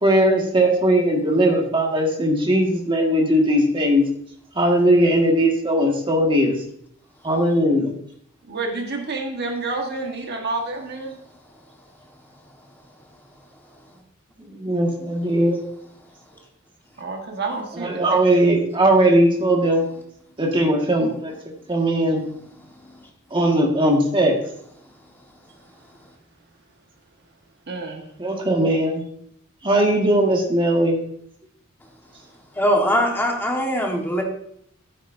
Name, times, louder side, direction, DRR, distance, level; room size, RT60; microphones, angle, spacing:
voice 1, 0.0-4.0 4.5-6.6 7.2-7.9 14.5-15.6 17.7-19.9 20.4-22.2 23.3-24.3 28.2-29.0 29.6-31.0, right 1 dB, 25° right, 0 dB, 1.7 m, -19 dB
voice 2, 8.5-11.1 17.0-18.2 27.7-28.0, right 3 dB, 50° right, 2 dB, 1.4 m, -29 dB
voice 3, 32.6-34.2, equal, 10° left, 0 dB, 1.4 m, -21 dB
11.0 x 9.4 x 2.7 m, 0.70 s
head